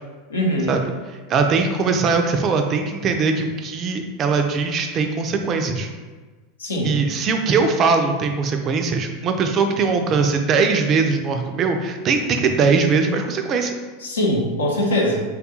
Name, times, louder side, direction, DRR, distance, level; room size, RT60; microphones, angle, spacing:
voice 1, 0.3-0.8 6.6-6.9 14.0-15.2, left 1 dB, 85° left, -1 dB, 0.6 m, -22 dB
voice 2, 1.3-5.9 6.8-13.7, right 4 dB, 40° right, 5 dB, 0.4 m, -20 dB
3.4 x 2.3 x 2.8 m, 1.3 s
hypercardioid pair, 90°, 0 cm